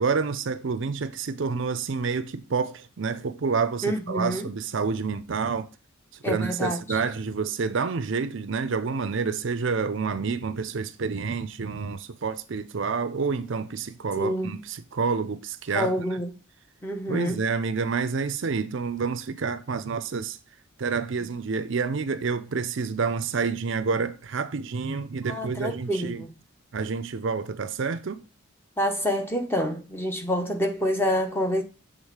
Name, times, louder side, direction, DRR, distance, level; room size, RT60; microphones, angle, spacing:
voice 1, 0.0-5.7 6.3-16.0 17.1-20.4 20.8-26.2 26.7-28.2, right 5 dB, 60° right, 0.5 m, -28 dB
voice 2, 3.8-4.5 6.2-7.0 14.2-14.5 15.7-16.3 16.8-17.4 25.3-26.3 28.8-31.6, equal, 10° left, 0.9 m, -27 dB
7.2 x 3.6 x 4.9 m
head